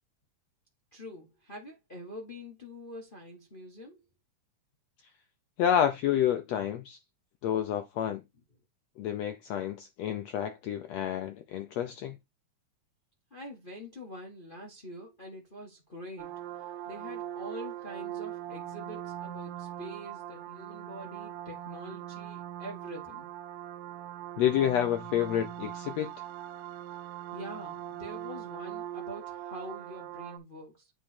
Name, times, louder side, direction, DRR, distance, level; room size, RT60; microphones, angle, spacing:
voice 1, 0.9-4.0 13.3-16.3 16.9-23.3 27.3-30.9, equal, 40° left, 0.6 m, -45 dB
voice 2, 5.6-7.0 7.4-8.2 9.0-12.2 24.4-26.1, left 10 dB, 70° left, 1.7 m, -29 dB
sound 1, 16.2-30.4, right 12 dB, 85° right, 2.3 m, -41 dB
8.9 x 3.2 x 4.3 m
omnidirectional pair, 3.6 m